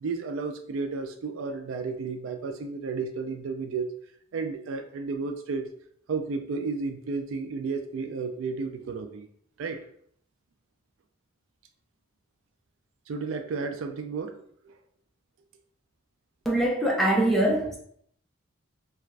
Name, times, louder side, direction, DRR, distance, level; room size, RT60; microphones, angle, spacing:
voice 1, 0.0-3.9 4.3-5.7 6.1-9.3 9.6-9.8 13.1-14.3 14.6-14.7, right 4 dB, 80° right, 6 dB, 0.3 m, -32 dB
voice 2, 16.5-17.8, right 1 dB, ahead, -3 dB, 0.4 m, -23 dB
2.4 x 2.3 x 3.1 m, 0.64 s
head